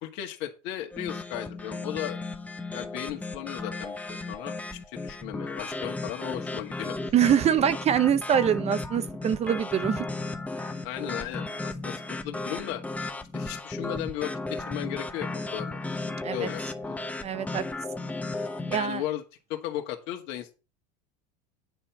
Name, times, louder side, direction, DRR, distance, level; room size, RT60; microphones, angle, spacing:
voice 1, 0.0-2.2 2.7-4.6 4.9-7.1 10.8-12.8 13.3-15.9 16.2-17.0 18.7-19.2 19.5-20.5, left 12 dB, 60° left, 2.0 m, -36 dB
sound 1, 0.9-18.8, left 2 dB, 5° left, 1.0 m, -35 dB
voice 2, 7.1-10.1 16.2-16.5 17.2-17.6 18.7-19.0, right 9 dB, 30° right, 0.7 m, -24 dB
9.9 x 4.4 x 7.1 m
supercardioid pair, 120°, 21 cm